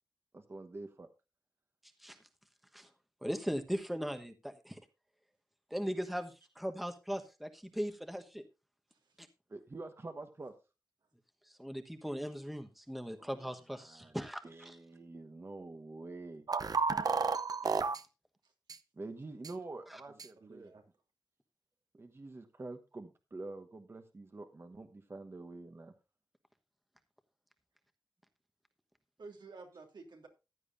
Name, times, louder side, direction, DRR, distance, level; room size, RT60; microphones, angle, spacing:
voice 1, 0.3-1.1 9.5-10.5 13.2-13.5 13.7-14.2 14.4-16.4 18.9-20.7 21.9-25.9, right 2 dB, 35° right, 6 dB, 1.2 m, -47 dB
voice 2, 3.2-4.8 5.7-8.4 9.2-9.3 11.6-14.4 14.6-14.7, equal, ahead, 6 dB, 1.2 m, -38 dB
sound 1, 16.5-18.0 18.7-18.8 19.4-19.5 20.2-20.3, right 4 dB, 60° right, 0.8 m, -31 dB
voice 3, 20.1-20.8 29.2-30.3, right 3 dB, 80° right, 3 dB, 3.1 m, -53 dB
15.0 x 11.0 x 2.6 m, 0.28 s
wide cardioid pair, 140°, 8 cm